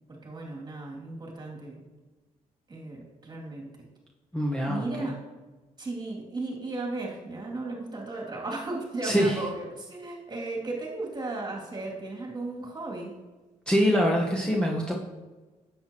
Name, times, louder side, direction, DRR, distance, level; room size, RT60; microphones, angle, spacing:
voice 1, 0.1-1.8 2.7-3.7 4.7-5.2 5.8-13.2, right 2 dB, 30° right, -2 dB, 2.7 m, -35 dB
voice 2, 4.3-5.1 9.0-9.4 13.7-14.9, equal, 5° left, -3 dB, 1.2 m, -24 dB
10.0 x 7.9 x 3.0 m, 1.2 s
cardioid pair, 90°, 14 cm